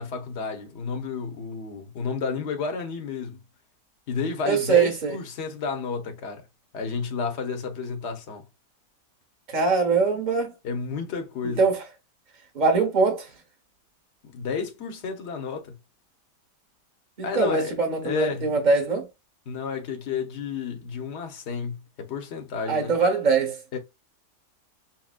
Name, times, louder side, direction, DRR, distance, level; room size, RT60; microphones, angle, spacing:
voice 1, 0.0-3.4 4.1-6.4 6.7-8.4 10.6-11.6 14.3-15.7 17.2-17.7 18.0-18.5 19.5-22.9 23.7-23.8, left 5 dB, 50° left, 1.0 m, -31 dB
voice 2, 4.5-5.2 9.5-10.5 11.4-11.8 12.5-13.3 17.2-19.1 22.6-23.6, right 4 dB, 30° right, 1.0 m, -22 dB
5.8 x 2.3 x 2.4 m
omnidirectional pair, 1.8 m